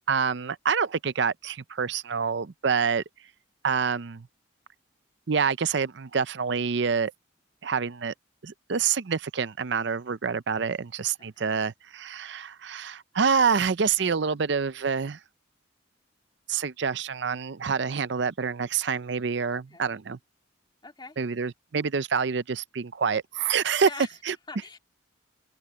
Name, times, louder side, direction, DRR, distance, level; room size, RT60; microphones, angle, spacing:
voice 1, 0.1-3.0 3.6-4.3 5.3-7.1 7.6-8.1 8.4-15.2 16.5-20.2 21.2-23.9 24.2-24.4, right 6 dB, 60° right, 0.5 m, -27 dB
voice 2, 11.2-11.5 19.5-19.8 20.8-21.2 23.8-24.1 24.5-24.8, left 3 dB, 20° left, 2.5 m, -43 dB
open air
head